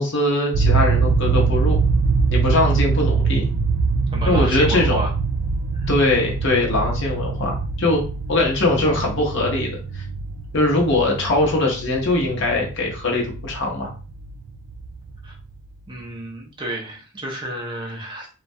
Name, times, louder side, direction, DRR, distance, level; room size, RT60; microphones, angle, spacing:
voice 1, 0.0-1.8 2.3-3.5 4.2-5.1 5.9-8.0 8.3-10.0 10.5-13.9, left 2 dB, 60° left, -1 dB, 0.8 m, -21 dB
sound 1, 0.5-15.4, right 5 dB, 85° right, 0.3 m, -23 dB
voice 2, 4.1-5.1 5.7-5.9 15.2-15.3 15.9-18.3, right 1 dB, 25° right, -1 dB, 0.5 m, -31 dB
2.3 x 2.1 x 2.6 m, 0.37 s
head